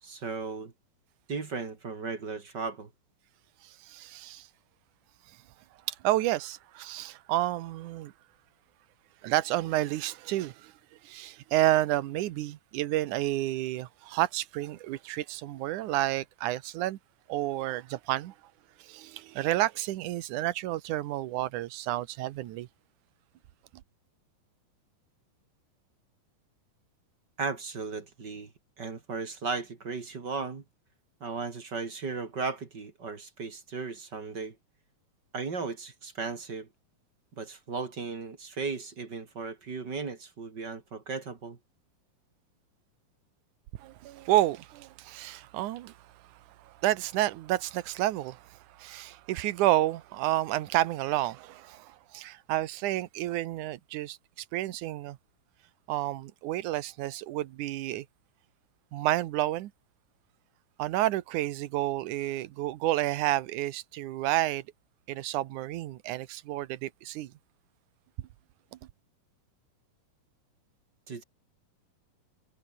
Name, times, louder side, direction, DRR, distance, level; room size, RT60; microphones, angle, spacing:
voice 1, 0.0-0.7 1.3-2.9 27.4-28.5 28.8-30.6 31.2-34.6 35.3-36.7 37.4-41.6 71.1-71.2, right 4 dB, 30° right, 2.4 m, -36 dB
voice 2, 3.6-4.5 5.9-8.1 9.2-10.7 11.0-17.0 17.3-18.3 18.8-22.7 43.8-45.9 46.7-55.2 55.9-58.1 58.9-59.7 60.8-64.6 65.1-67.3, right 15 dB, 70° right, 2.1 m, -30 dB
omnidirectional pair, 4.3 m